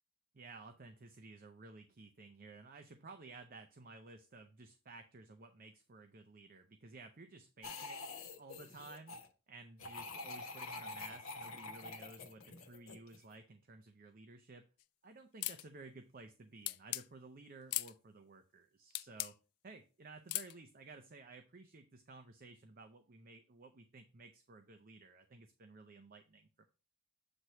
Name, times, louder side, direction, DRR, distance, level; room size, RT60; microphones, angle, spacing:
voice 1, 0.3-8.0 8.4-9.2 9.5-14.7 15.0-19.4 19.6-26.7, right 3 dB, 40° right, 6 dB, 0.5 m, -55 dB
sound 1, 7.6-9.3 9.8-13.3, left 3 dB, 70° left, 1.1 m, -47 dB
sound 2, 15.4-15.6 16.7-17.1 17.7-17.9 18.9-19.3 20.3-20.5, left 18 dB, 90° left, 0.3 m, -38 dB
7.9 x 3.1 x 5.6 m, 0.33 s
head